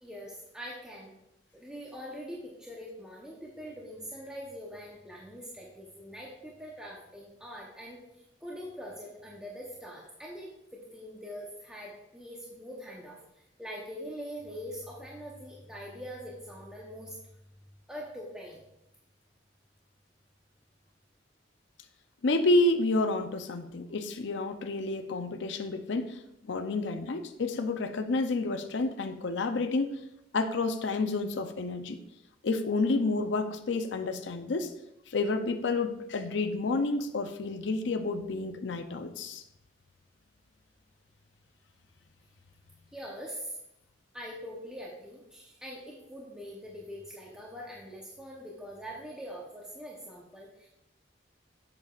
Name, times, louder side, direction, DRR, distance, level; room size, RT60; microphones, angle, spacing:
voice 1, 0.0-1.1 1.5-8.0 8.4-17.2 17.9-18.6 42.9-43.6 44.1-50.7, equal, 5° right, -4 dB, 0.8 m, -43 dB
voice 2, 22.2-30.0 30.3-32.0 32.4-34.7 35.1-39.4, left 2 dB, 80° left, 8 dB, 0.5 m, -29 dB
8.1 x 6.8 x 2.4 m, 0.84 s
head